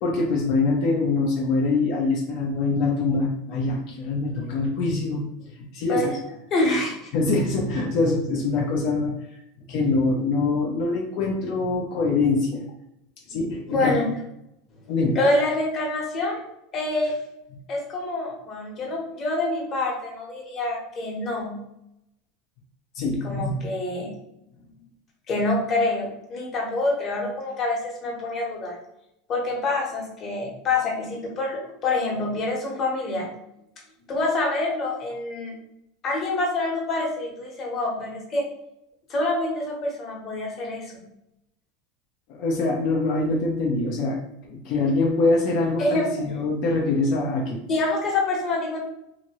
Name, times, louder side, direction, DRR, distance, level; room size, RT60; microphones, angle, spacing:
voice 1, 0.0-5.2 5.6-6.1 7.1-9.1 9.7-12.6 13.3-14.0 14.9-15.2 23.0-23.7 42.3-44.2 44.5-47.6, left 3 dB, 60° left, -1 dB, 0.6 m, -24 dB
voice 2, 6.5-7.0 13.7-14.1 15.1-16.4 16.7-17.1 17.7-21.6 23.2-24.1 25.3-28.8 29.3-33.3 34.1-35.5 36.0-38.4 39.1-40.9 45.8-46.3 47.7-48.8, left 2 dB, 35° left, -1 dB, 1.1 m, -26 dB
2.9 x 2.6 x 3.0 m, 0.81 s
supercardioid pair, 130°, 0 cm